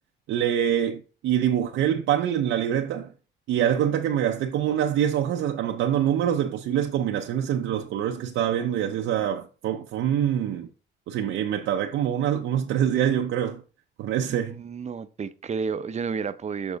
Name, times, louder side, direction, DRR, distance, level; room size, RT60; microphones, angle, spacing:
voice 1, 0.3-3.1 3.5-10.7 11.1-13.6 14.0-14.6, right 10 dB, 85° right, 0.6 m, -25 dB
voice 2, 14.3-16.8, right 5 dB, 35° right, 0.6 m, -31 dB
7.1 x 5.6 x 4.0 m
cardioid pair, 90°, 20 cm